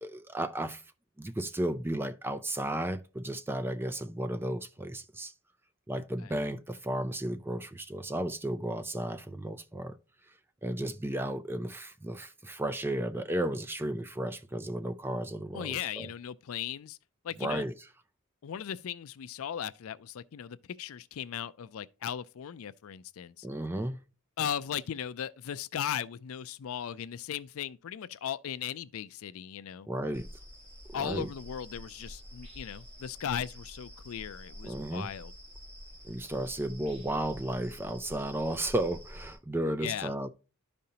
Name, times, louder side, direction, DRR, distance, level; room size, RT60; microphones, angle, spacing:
voice 1, 0.0-0.8 1.2-5.3 5.9-10.0 10.6-16.1 17.4-17.7 23.4-24.0 29.9-30.3 31.0-31.3 34.6-35.1 36.0-40.3, right 1 dB, 10° right, 0.4 m, -34 dB
voice 2, 15.5-17.0 17.2-17.7 18.4-23.5 24.4-29.9 30.9-35.3 39.8-40.1, left 9 dB, 70° left, 0.4 m, -37 dB
sound 1, 30.1-39.3, equal, 30° right, 4.7 m, -48 dB
12.0 x 5.2 x 2.8 m
head